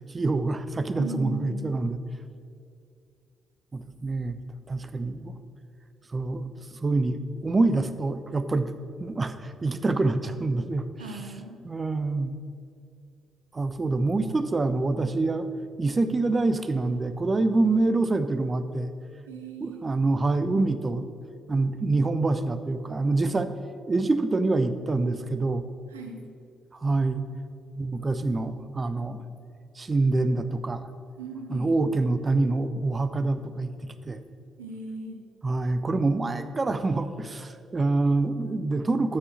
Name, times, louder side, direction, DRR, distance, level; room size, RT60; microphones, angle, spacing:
voice 1, 0.1-2.0 3.7-4.4 4.7-5.4 6.1-8.7 9.0-10.8 11.6-12.3 13.5-15.5 15.8-18.9 19.6-21.1 21.5-23.5 23.9-25.7 26.7-27.3 27.8-29.2 29.8-30.9 31.5-34.2 35.4-39.2, right 3 dB, 30° right, 11 dB, 0.5 m, -26 dB
voice 2, 1.0-1.8 11.0-11.6 19.3-19.8 25.9-26.2 31.2-31.8 34.6-35.2, right 2 dB, 80° right, 3 dB, 0.8 m, -38 dB
7.5 x 6.2 x 5.9 m, 2.5 s
figure-of-eight pair, 40°, 0 cm